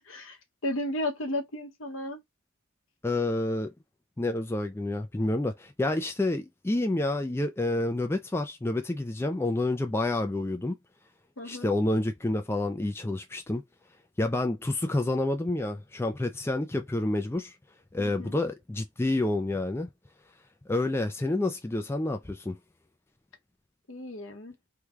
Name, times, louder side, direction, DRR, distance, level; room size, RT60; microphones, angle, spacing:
voice 1, 0.0-2.2 11.4-11.7 18.0-18.3 23.9-24.6, left 1 dB, 70° left, 1.0 m, -34 dB
voice 2, 3.0-3.7 4.2-10.8 11.4-13.6 14.2-17.6 17.9-19.9 20.7-22.6, left 2 dB, 10° left, 0.4 m, -29 dB
3.2 x 2.2 x 3.5 m
head